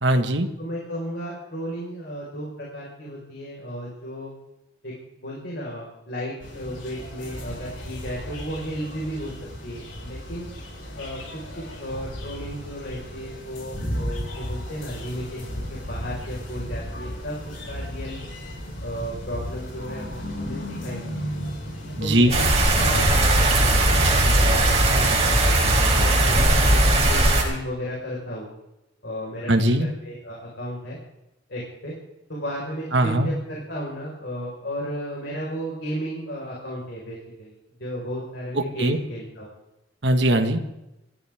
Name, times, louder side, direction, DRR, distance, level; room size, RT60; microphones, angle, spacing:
voice 1, 0.0-0.5 22.0-22.3 29.5-29.9 32.9-33.3 38.5-39.0 40.0-40.6, right 1 dB, 65° right, 5 dB, 1.7 m, -20 dB
voice 2, 0.6-4.3 4.8-4.9 5.2-9.3 9.6-10.5 11.0-18.2 18.8-21.1 22.0-22.4 22.8-25.6 25.9-28.5 29.0-31.0 31.5-31.9 32.3-39.5, equal, 65° left, -4 dB, 5.1 m, -34 dB
sound 1, 6.4-23.2, equal, 85° left, 5.8 m, -34 dB
sound 2, 22.3-27.4, right 1 dB, 35° right, 4.4 m, -18 dB
26.5 x 14.0 x 3.7 m, 0.91 s
head